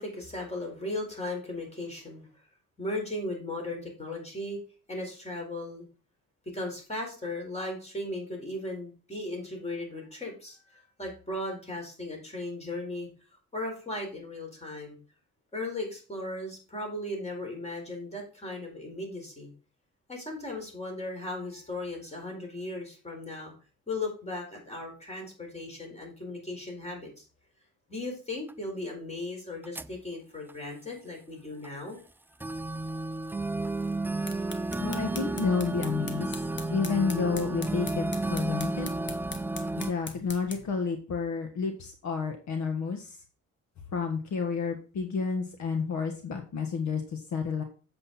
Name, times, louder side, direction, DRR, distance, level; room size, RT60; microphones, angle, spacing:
voice 1, 0.0-2.3 2.8-4.6 4.9-5.8 6.5-13.1 13.5-15.0 15.5-19.5 20.1-23.5 23.9-27.2 27.9-32.0, left 2 dB, 20° left, 1 dB, 4.6 m, -37 dB
sound 1, 28.5-28.6 29.6-30.0 30.5-30.6 31.6-31.7 32.4-39.9, right 2 dB, 5° right, 0.3 m, -32 dB
sound 2, 34.0-40.8, left 4 dB, 40° left, 1.6 m, -43 dB
voice 2, 34.8-36.3 36.7-38.9 39.8-43.2 43.9-47.6, left 5 dB, 70° left, 5 dB, 1.6 m, -30 dB
7.8 x 7.5 x 4.3 m, 0.37 s
cardioid pair, 90°, 30 cm